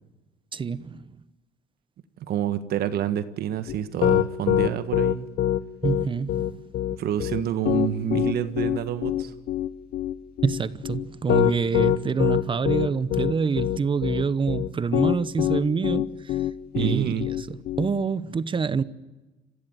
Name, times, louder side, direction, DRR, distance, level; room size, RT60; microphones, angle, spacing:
voice 1, 0.5-1.0 5.8-6.5 10.4-16.4 16.7-18.8, right 5 dB, 30° right, 0.9 m, -26 dB
voice 2, 2.3-5.3 7.0-9.3 16.8-17.2, right 10 dB, 70° right, 1.6 m, -27 dB
Piano, 3.7-17.9, left 12 dB, 65° left, 0.9 m, -24 dB
26.5 x 15.5 x 9.3 m
cardioid pair, 110°, 17 cm